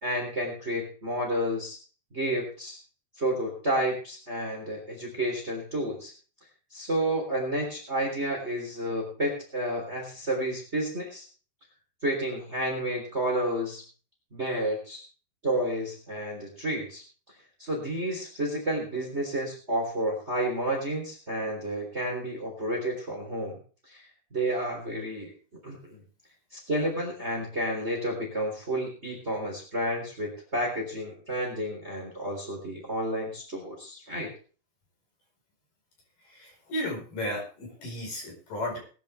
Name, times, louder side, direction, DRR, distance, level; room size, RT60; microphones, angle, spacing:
voice 1, 0.0-1.8 2.1-2.8 3.2-6.1 6.7-11.3 12.0-13.8 14.3-15.0 15.4-17.0 17.6-23.6 23.9-24.0 24.3-26.0 26.5-34.3, right 1 dB, 15° right, 1 dB, 3.5 m, -30 dB
voice 2, 36.2-38.8, left 1 dB, 55° left, 0 dB, 6.4 m, -34 dB
20.5 x 10.5 x 3.4 m, 0.39 s
omnidirectional pair, 4.8 m